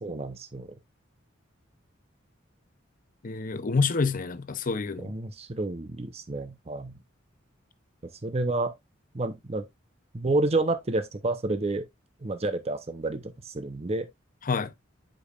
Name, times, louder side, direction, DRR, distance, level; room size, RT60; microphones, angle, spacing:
voice 1, 0.0-0.7 5.0-6.9 8.2-8.7 9.1-9.6 10.1-11.8 12.2-14.1, right 2 dB, 30° right, 0.7 m, -29 dB
voice 2, 3.2-5.1 14.5-14.7, left 4 dB, 40° left, 0.6 m, -27 dB
8.4 x 5.2 x 2.4 m
head